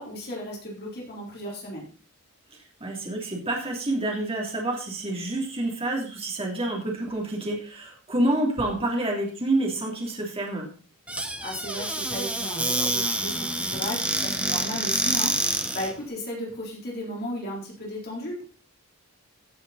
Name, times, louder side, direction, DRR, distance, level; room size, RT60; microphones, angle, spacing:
voice 1, 0.0-1.9 11.4-18.4, equal, 45° left, -3 dB, 3.8 m, -35 dB
voice 2, 2.8-10.7 14.7-14.8, right 1 dB, 25° right, -1 dB, 3.2 m, -28 dB
Squeak / Cupboard open or close, 11.1-15.9, right 1 dB, 5° right, 1.1 m, -27 dB
15.0 x 7.2 x 4.2 m, 0.39 s
head